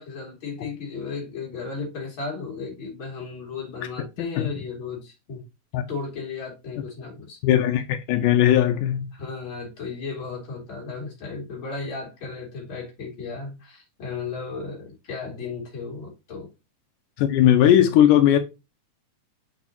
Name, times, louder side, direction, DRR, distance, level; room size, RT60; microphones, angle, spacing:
voice 1, 0.0-5.5 5.9-7.4 9.1-16.5, left 4 dB, 40° left, 3.2 m, -35 dB
voice 2, 7.4-9.1 17.2-18.4, left 11 dB, 85° left, 2.3 m, -18 dB
6.4 x 6.3 x 2.8 m
omnidirectional pair, 3.7 m